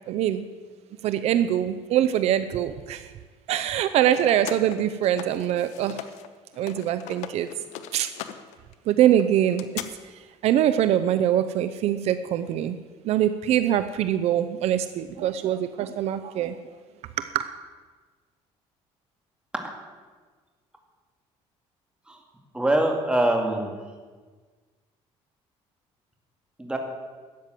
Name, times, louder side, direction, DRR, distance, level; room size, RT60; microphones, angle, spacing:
voice 1, 0.1-0.5 1.0-3.1 3.5-6.0 6.6-7.5 7.9-8.1 8.9-9.7 10.4-12.8 13.0-16.6 17.2-17.5, right 11 dB, 65° right, 11 dB, 0.6 m, -23 dB
sound 1, 3.7-6.3 6.5-9.9, left 12 dB, 85° left, 0.9 m, -40 dB
voice 2, 22.5-23.7 26.6-26.8, right 1 dB, 10° right, 2 dB, 2.4 m, -23 dB
13.0 x 9.1 x 7.6 m, 1.4 s
cardioid pair, 120°, 12 cm